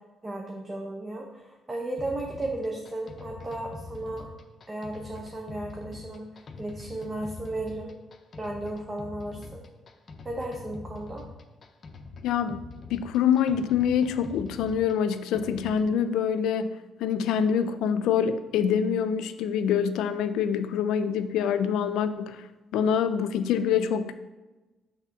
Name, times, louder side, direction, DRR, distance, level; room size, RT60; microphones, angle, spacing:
voice 1, 0.2-4.3 4.7-7.9 8.4-9.6 10.2-11.3, right 1 dB, 25° right, 0 dB, 0.8 m, -35 dB
sound 1, 2.0-15.9, left 3 dB, 45° left, 0.7 m, -44 dB
voice 2, 12.2-12.6 12.9-16.7 17.0-22.4 22.7-24.1, left 8 dB, 90° left, 12 dB, 0.4 m, -25 dB
5.9 x 3.5 x 5.8 m, 1.1 s
cardioid pair, 90°, 0 cm